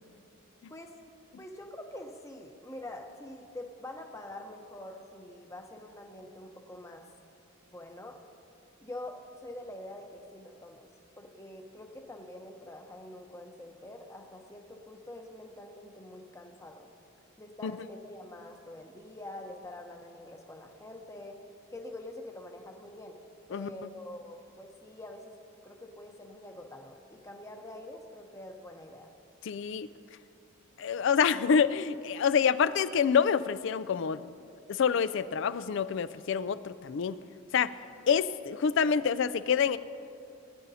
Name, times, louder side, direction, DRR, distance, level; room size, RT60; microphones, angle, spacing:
voice 1, 1.4-7.0 7.6-8.2 8.8-10.9 11.2-16.9 17.4-21.4 21.7-23.2 23.5-25.3 25.6-29.1, left 1 dB, 15° left, 2 dB, 0.8 m, -45 dB
voice 2, 29.4-29.9 30.8-34.3 34.7-37.2 37.5-37.7 38.1-39.8, left 6 dB, 55° left, 15 dB, 0.3 m, -27 dB
20.5 x 10.0 x 2.8 m, 2.5 s
head